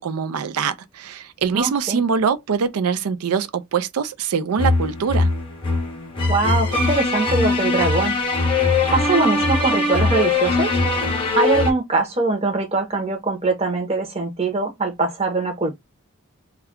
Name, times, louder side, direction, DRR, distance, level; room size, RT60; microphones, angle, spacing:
voice 1, 0.0-5.3, right 6 dB, 85° right, 0.4 m, -23 dB
voice 2, 1.5-2.0 6.3-8.2 8.9-10.8 11.3-15.8, right 3 dB, 25° right, 0.7 m, -22 dB
sound 1, 4.6-11.7, left 3 dB, 25° left, 0.7 m, -21 dB
2.3 x 2.2 x 3.5 m
head